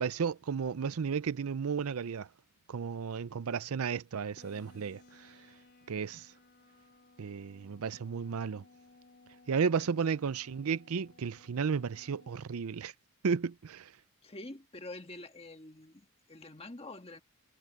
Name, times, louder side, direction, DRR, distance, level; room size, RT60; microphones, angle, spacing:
voice 1, 0.0-2.3 2.7-5.3 5.9-6.3 7.2-8.6 9.5-12.9 13.2-13.9, right 6 dB, 75° right, 0.5 m, -33 dB
sound 1, 4.4-12.4, left 3 dB, 45° left, 4.1 m, -61 dB
voice 2, 9.5-10.1 14.2-17.2, left 2 dB, 25° left, 1.7 m, -47 dB
head